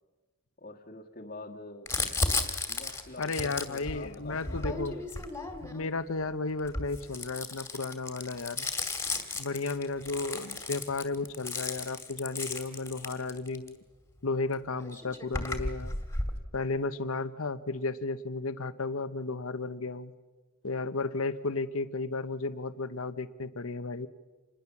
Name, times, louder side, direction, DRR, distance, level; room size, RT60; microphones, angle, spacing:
voice 1, 0.6-1.9 2.7-5.0, left 2 dB, 40° left, -3 dB, 1.6 m, -46 dB
Crumpling crinkling, 1.9-5.9 6.6-13.7 14.5-14.6 14.8-16.4, left 3 dB, 10° left, 2.2 m, -34 dB
voice 2, 3.2-5.0 5.6-8.7 9.4-13.8 14.2-16.0 16.5-20.1 20.6-24.1, left 3 dB, 70° left, 13 dB, 1.0 m, -33 dB
27.0 x 20.5 x 7.2 m, 1.2 s
head